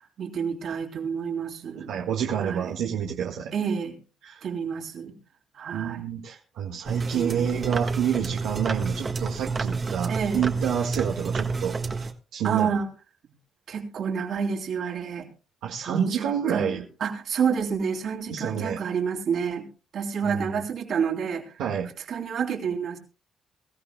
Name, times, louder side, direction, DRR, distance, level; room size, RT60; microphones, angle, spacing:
voice 1, 0.0-1.9 2.4-2.7 3.5-3.9 4.4-5.1 5.5-6.0 7.1-7.6 10.1-10.5 12.4-12.9 13.7-15.3 15.9-19.7 19.9-21.5 22.1-23.0, right 6 dB, 65° right, 3 dB, 3.2 m, -29 dB
voice 2, 1.9-3.5 4.2-4.5 5.7-12.1 12.3-12.7 15.6-16.8 18.3-18.8 20.3-20.5 21.6-21.9, right 8 dB, 90° right, 0 dB, 1.6 m, -28 dB
sound 1, 6.8-12.1, right 4 dB, 35° right, 1.5 m, -29 dB
23.5 x 14.0 x 2.2 m, 0.33 s
cardioid pair, 90°, 0 cm